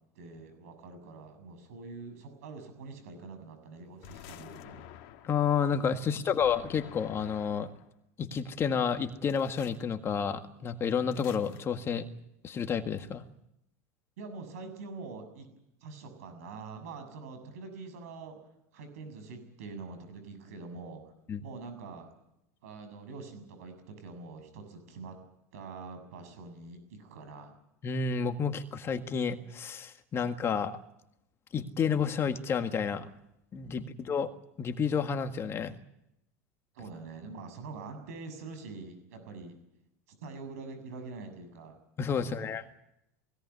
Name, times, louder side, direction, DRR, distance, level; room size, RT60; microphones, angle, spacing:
voice 1, 0.2-4.9 6.0-6.3 14.2-15.5 15.8-18.4 18.7-21.0 21.4-22.1 22.6-25.2 25.5-27.5 33.6-34.1 36.7-39.6 40.1-41.8 42.2-42.6, right 4 dB, 80° right, 9 dB, 7.1 m, -45 dB
sound 1, 4.0-5.5 6.4-7.9 9.3-9.8 11.1-11.6, left 12 dB, 65° left, 2.2 m, -49 dB
voice 2, 5.2-7.7 8.2-12.1 12.4-13.2 21.3-21.4 27.8-30.7 31.5-33.1 33.5-34.3 34.6-35.7 42.0-42.6, left 6 dB, 30° left, 7 dB, 1.8 m, -30 dB
21.0 x 17.5 x 9.5 m, 0.82 s
supercardioid pair, 105°, 8 cm